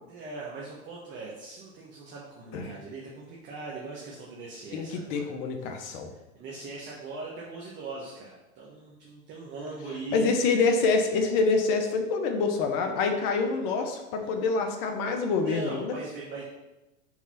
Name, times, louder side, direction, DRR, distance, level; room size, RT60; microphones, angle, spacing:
voice 1, 0.1-5.4 6.1-10.3 14.2-14.3 15.4-16.4, right 3 dB, 25° right, -4 dB, 1.1 m, -40 dB
voice 2, 4.7-6.1 10.1-15.9, left 4 dB, 45° left, 4 dB, 1.0 m, -26 dB
4.6 x 3.8 x 5.6 m, 1.0 s
hypercardioid pair, 135°, 41 cm